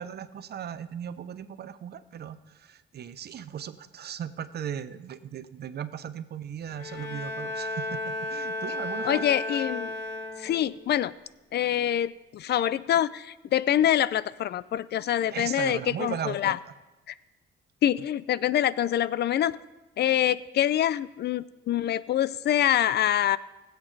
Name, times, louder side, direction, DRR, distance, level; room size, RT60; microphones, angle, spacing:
voice 1, 0.0-9.3 15.3-16.5, right 9 dB, 55° right, 13 dB, 0.7 m, -37 dB
Bowed string instrument, 6.7-10.8, left 2 dB, 80° left, 2.9 m, -34 dB
voice 2, 9.0-9.9 10.4-11.1 11.5-16.6 17.1-17.2 17.8-19.6 20.0-23.4, left 11 dB, 55° left, 18 dB, 0.4 m, -25 dB
19.5 x 8.1 x 3.3 m, 1.1 s
cardioid pair, 90°, 20 cm